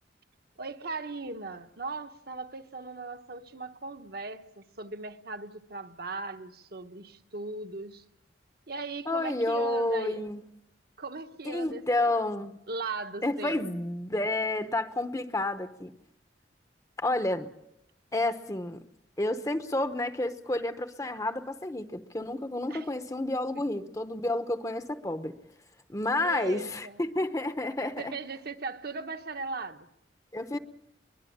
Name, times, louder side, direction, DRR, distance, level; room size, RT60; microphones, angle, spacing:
voice 1, 0.6-8.0 8.7-10.2 11.0-12.2 12.7-13.7 22.7-22.9 26.2-27.0 28.0-29.9, right 3 dB, 55° right, 1.2 m, -38 dB
voice 2, 9.1-10.4 11.4-12.5 13.2-15.9 17.0-17.5 18.1-18.8 19.2-25.3 25.9-28.1 30.3-30.6, left 2 dB, 15° left, 0.9 m, -30 dB
22.5 x 21.5 x 8.7 m
head